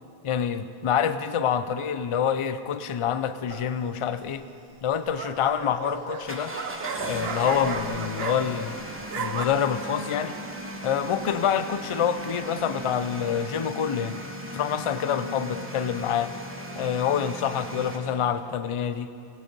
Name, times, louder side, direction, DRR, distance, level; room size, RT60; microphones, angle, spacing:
voice 1, 0.2-4.4 4.8-6.5 7.0-8.8 9.2-10.4 10.8-14.2 14.5-16.3 16.8-19.1, left 8 dB, 50° left, 12 dB, 0.3 m, -26 dB
sound 1, 3.5-3.9 4.8-8.7 9.0-9.4, right 5 dB, 70° right, 1.0 m, -34 dB
sound 2, 6.3-18.0, right 1 dB, 15° right, 1.0 m, -37 dB
17.0 x 9.1 x 5.2 m, 2.5 s
omnidirectional pair, 1.1 m